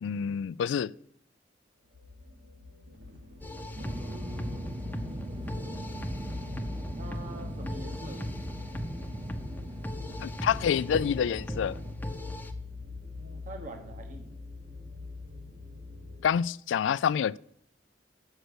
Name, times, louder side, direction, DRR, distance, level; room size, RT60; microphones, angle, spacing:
voice 1, 0.0-0.9 10.2-11.8 16.2-17.4, left 7 dB, 80° left, 0.3 m, -27 dB
sound 1, 1.8-16.3, left 3 dB, 75° right, 2.2 m, -44 dB
sound 2, 3.4-12.5, equal, 10° left, 0.8 m, -39 dB
sound 3, 3.7-11.9, right 1 dB, 25° right, 0.6 m, -42 dB
voice 2, 3.8-4.7 7.0-8.3 13.1-14.4, right 2 dB, 45° right, 1.0 m, -45 dB
8.0 x 6.6 x 6.1 m
head